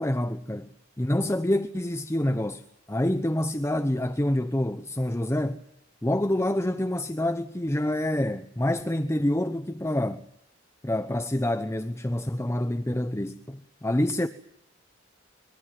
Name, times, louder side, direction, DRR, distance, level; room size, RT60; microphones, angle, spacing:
voice 1, 0.0-5.6 6.0-10.3 10.8-14.3, left 1 dB, 15° left, 0.9 m, -27 dB
25.5 x 23.0 x 7.6 m
head